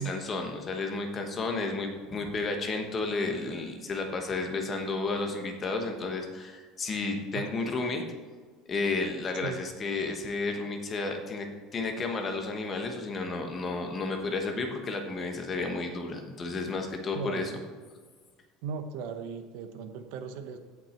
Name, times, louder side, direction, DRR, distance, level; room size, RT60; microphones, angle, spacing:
voice 1, 0.0-8.0 8.7-11.5 11.7-17.5, left 3 dB, 20° left, 4 dB, 1.2 m, -32 dB
voice 2, 17.1-17.6 18.6-20.6, right 6 dB, 55° right, 8 dB, 1.0 m, -37 dB
16.5 x 5.9 x 4.4 m, 1.5 s
cardioid pair, 175°, 0 cm